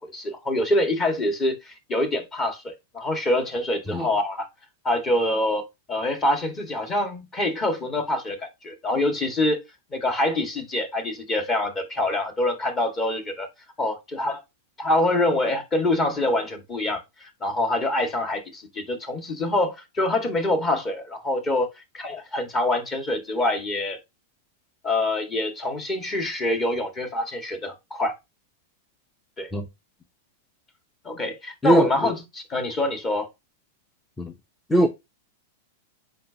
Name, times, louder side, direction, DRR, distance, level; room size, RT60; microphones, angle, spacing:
voice 1, 0.0-4.5 4.8-9.6 9.9-13.5 13.8-14.4 14.8-21.7 21.9-24.0 24.8-28.1 29.4-29.5 31.1-33.3, left 1 dB, 25° left, 1.9 m, -25 dB
voice 2, 31.6-32.1 34.2-34.3 34.7-34.9, right 1 dB, 10° left, 0.7 m, -21 dB
7.5 x 5.2 x 2.9 m
hypercardioid pair, 120°, 0 cm